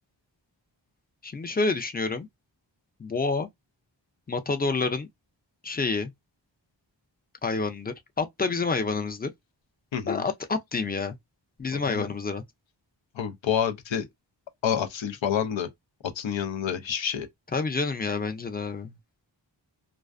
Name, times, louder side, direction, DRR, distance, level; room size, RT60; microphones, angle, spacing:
voice 1, 1.2-2.3 3.0-3.5 4.3-5.1 5.6-6.1 7.4-9.3 10.1-11.2 11.6-12.4 17.5-18.9, left 4 dB, 20° left, 0.4 m, -28 dB
voice 2, 9.9-10.2 11.7-12.1 13.2-14.1 14.6-15.7 16.2-17.3, left 8 dB, 85° left, 0.6 m, -28 dB
2.4 x 2.1 x 2.3 m
wide cardioid pair, 65°, 44 cm